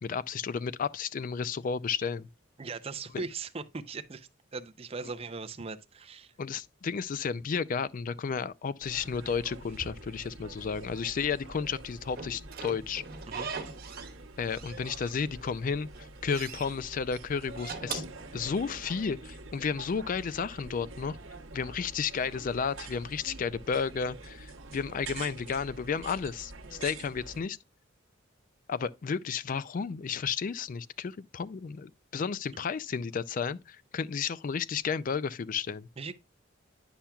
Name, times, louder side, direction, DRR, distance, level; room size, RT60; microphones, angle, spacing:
voice 1, 0.0-2.3 3.1-3.2 6.4-13.0 14.4-18.0 18.3-21.2 21.5-27.6 28.7-35.9, left 6 dB, 40° left, 0.3 m, -32 dB
voice 2, 2.6-6.3 13.3-13.5 36.0-36.1, right 4 dB, 30° right, 0.5 m, -39 dB
sound 1, 8.8-27.4, right 3 dB, 80° right, 1.0 m, -46 dB
Slam / Squeak, 12.2-14.2 14.5-15.5 15.8-16.7 17.4-18.9, right 5 dB, 50° right, 1.2 m, -41 dB
10.0 x 5.7 x 2.3 m
head